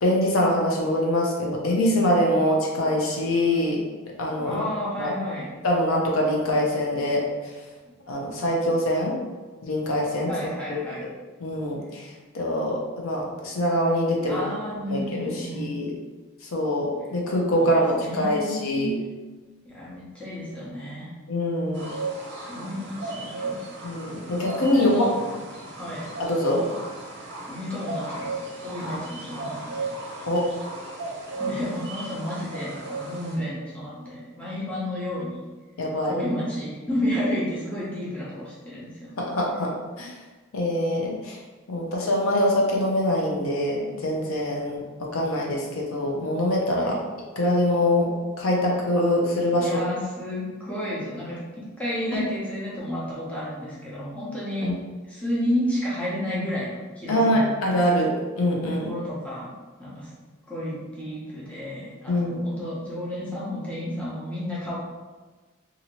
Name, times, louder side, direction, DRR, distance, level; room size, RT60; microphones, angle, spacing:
voice 1, 0.0-3.8 4.2-4.6 5.0-5.1 5.6-7.2 8.1-9.2 9.6-10.3 11.4-12.1 12.3-14.4 14.9-15.9 16.5-18.9 21.3-21.9 23.8-25.1 26.2-26.6 28.9-29.0 30.3-30.4 35.8-36.2 39.2-39.7 40.0-40.1 40.5-41.4 41.7-44.8 45.1-47.0 47.4-49.8 54.6-54.7 57.1-58.9 62.1-62.5, left 1 dB, 85° left, -2 dB, 0.6 m, -24 dB
voice 2, 4.4-5.5 10.3-11.1 14.2-15.7 17.6-19.0 19.6-21.1 22.5-23.7 24.7-25.1 25.8-26.1 27.5-28.3 28.6-29.8 31.3-35.4 36.1-39.1 46.8-47.0 49.5-54.7 55.0-57.5 58.7-59.5 59.8-60.1 60.5-64.8, left 1 dB, 5° left, -8 dB, 0.7 m, -31 dB
sound 1, 21.7-33.4, right 2 dB, 55° right, 0.7 m, -35 dB
2.8 x 2.6 x 2.9 m, 1.3 s
head